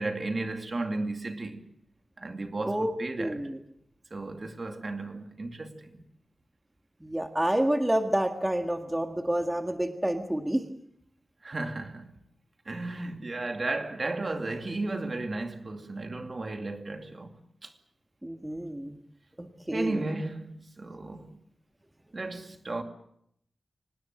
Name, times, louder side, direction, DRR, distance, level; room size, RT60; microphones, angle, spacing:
voice 1, 0.0-1.6 2.2-3.5 4.1-6.0 11.4-12.1 12.7-17.7 19.7-21.4 22.1-22.8, right 2 dB, 45° right, 2.4 m, -34 dB
voice 2, 3.2-3.6 7.0-10.6 18.2-19.0 19.4-20.0, right 1 dB, 10° right, 1.7 m, -29 dB
25.5 x 19.0 x 7.4 m
wide cardioid pair, 95°, 0 cm